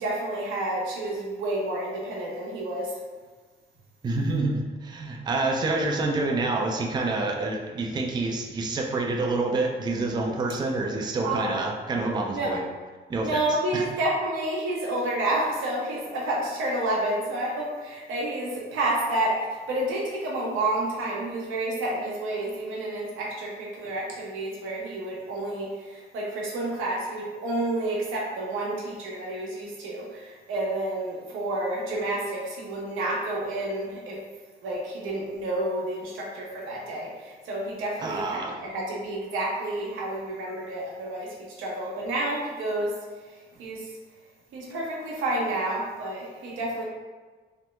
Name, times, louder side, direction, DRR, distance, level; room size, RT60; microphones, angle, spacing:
voice 1, 0.0-3.0 11.2-11.5 12.3-12.5 13.2-34.2 34.6-42.9 43.3-43.9 44.5-46.8, right 1 dB, 90° right, -4 dB, 0.8 m, -30 dB
voice 2, 4.0-12.6 13.1-13.8 38.0-38.6, right 2 dB, 20° right, 1 dB, 0.4 m, -27 dB
3.0 x 2.1 x 3.1 m, 1.4 s
cardioid pair, 90°, 20 cm